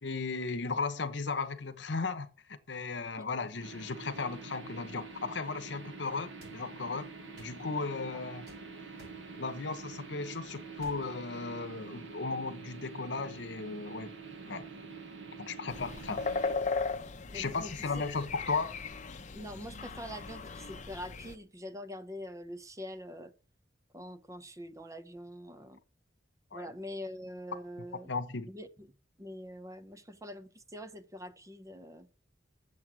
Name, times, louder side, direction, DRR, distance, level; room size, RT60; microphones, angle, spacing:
voice 1, 0.0-7.1 7.4-8.5 9.4-14.1 14.5-14.7 15.4-16.3 17.3-18.8 26.5-26.7 28.1-28.5, left 4 dB, 70° left, 1.0 m, -36 dB
sound 1, 3.6-16.6, right 4 dB, 90° right, 1.5 m, -46 dB
sound 2, 6.4-6.6 7.4-7.6 8.5-8.6 9.0-9.2 10.8-11.0, right 1 dB, 65° right, 4.6 m, -53 dB
sound 3, 15.7-21.4, left 4 dB, 40° left, 0.8 m, -37 dB
voice 2, 17.3-17.9 19.3-23.3 23.9-25.8 26.5-28.1 28.5-28.9 29.2-32.1, equal, 20° right, 0.7 m, -44 dB
7.9 x 7.5 x 6.1 m
head